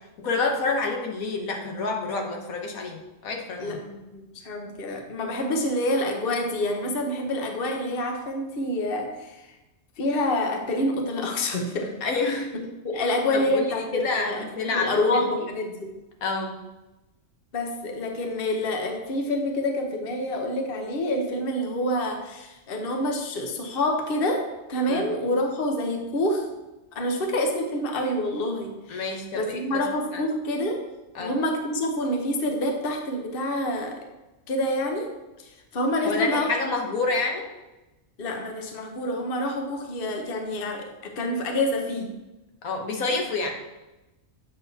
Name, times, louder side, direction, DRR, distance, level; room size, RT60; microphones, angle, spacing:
voice 1, 0.2-3.8 4.9-5.0 12.0-12.6 13.0-13.1 13.3-15.2 16.2-16.5 24.9-25.1 28.9-29.9 30.1-30.2 31.1-31.4 36.0-37.4 42.6-43.6, left 3 dB, 85° left, 2 dB, 1.4 m, -28 dB
voice 2, 3.6-9.5 10.0-11.9 12.3-12.4 12.8-15.9 17.5-26.5 26.9-30.8 31.2-34.0 34.5-35.1 35.4-36.6 38.2-42.1, left 1 dB, 45° left, 2 dB, 1.0 m, -27 dB
8.0 x 6.3 x 2.8 m, 1.0 s
omnidirectional pair, 1.4 m